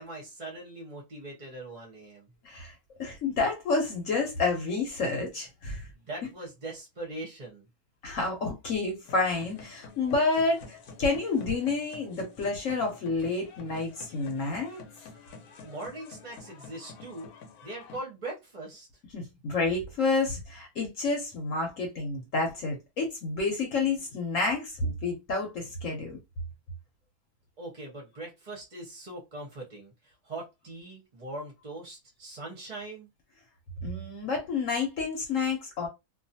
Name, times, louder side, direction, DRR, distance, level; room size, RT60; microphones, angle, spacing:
voice 1, 0.0-2.3 5.9-7.7 15.6-17.3 17.6-18.9 27.6-33.1, right 2 dB, 40° right, 0.7 m, -41 dB
voice 2, 3.0-5.9 8.0-14.8 19.1-26.2 33.8-35.9, left 3 dB, 65° left, 1.1 m, -29 dB
sound 1, 9.1-18.0, left 4 dB, 85° left, 1.2 m, -49 dB
2.4 x 2.4 x 2.7 m
omnidirectional pair, 1.6 m